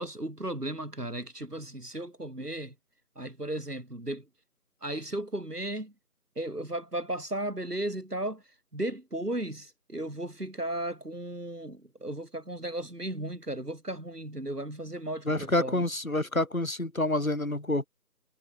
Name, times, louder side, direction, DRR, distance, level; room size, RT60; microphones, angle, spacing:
voice 1, 0.0-2.7 3.2-4.2 4.8-5.9 6.4-8.4 8.7-15.9, right 1 dB, 80° right, 6.4 m, -35 dB
voice 2, 15.3-17.9, left 1 dB, 60° left, 3.6 m, -28 dB
figure-of-eight pair, 175°, 46 cm